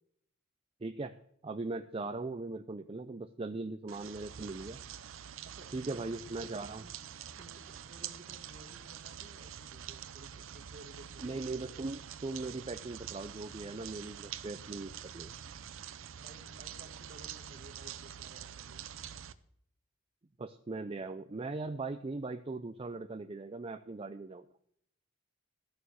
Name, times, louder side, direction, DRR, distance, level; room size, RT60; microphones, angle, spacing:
voice 1, 0.8-1.1 1.4-4.8 5.7-6.8 11.2-15.3 20.4-24.4, right 3 dB, 30° right, 8 dB, 0.5 m, -39 dB
sound 1, 3.9-19.3, right 9 dB, 70° right, 0.6 m, -46 dB
voice 2, 5.4-6.1 6.4-7.0 7.3-11.5 16.2-18.8, right 1 dB, 45° right, 5 dB, 1.5 m, -56 dB
13.0 x 6.9 x 6.3 m, 0.68 s
head